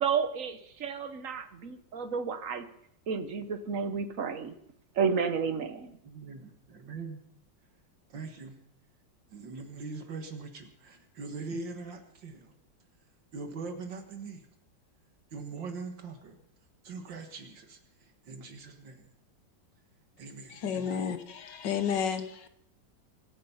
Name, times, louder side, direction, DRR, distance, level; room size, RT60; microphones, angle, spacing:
voice 1, 0.0-2.6 3.1-4.5 5.0-6.0, right 6 dB, 50° right, 1.3 m, -31 dB
voice 2, 6.0-7.2 8.1-8.6 9.3-12.5 13.3-14.5 15.3-16.4 16.8-17.8 18.3-19.1 20.2-21.0, right 4 dB, 70° right, 2.3 m, -42 dB
voice 3, 20.5-22.5, left 7 dB, 65° left, 1.8 m, -32 dB
24.5 x 8.9 x 5.7 m
omnidirectional pair, 2.1 m